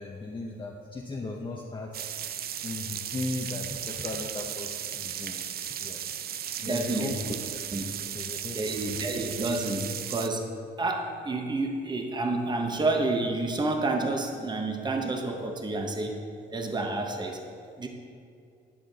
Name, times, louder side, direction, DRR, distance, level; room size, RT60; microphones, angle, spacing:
voice 1, 0.0-2.1 2.6-6.2 6.6-7.6 8.1-9.0, left 3 dB, 25° left, -1 dB, 0.7 m, -37 dB
sound 1, 1.9-10.3, right 9 dB, 50° right, 0.4 m, -36 dB
voice 2, 6.7-7.1 7.7-7.8 8.5-10.5 10.8-16.2 16.5-17.4 17.8-17.9, right 2 dB, 20° right, 4 dB, 0.8 m, -29 dB
10.5 x 6.0 x 4.0 m, 2.4 s
cardioid pair, 90°, 20 cm